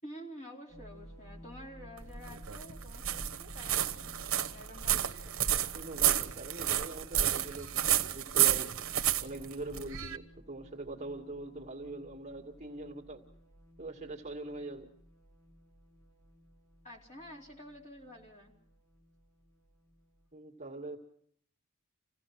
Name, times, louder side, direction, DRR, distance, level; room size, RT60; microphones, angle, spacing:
voice 1, 0.0-4.2 4.4-5.4 16.8-18.5, equal, 35° left, -1 dB, 4.3 m, -49 dB
sound 1, 0.7-20.3, equal, 70° left, 5.5 m, -55 dB
sound 2, 2.0-10.2, right 11 dB, 70° right, 1.2 m, -31 dB
voice 2, 5.7-8.7 9.2-13.2 13.8-14.9 20.3-21.0, right 2 dB, 30° right, 1 dB, 2.2 m, -42 dB
28.0 x 17.0 x 6.0 m, 0.66 s
head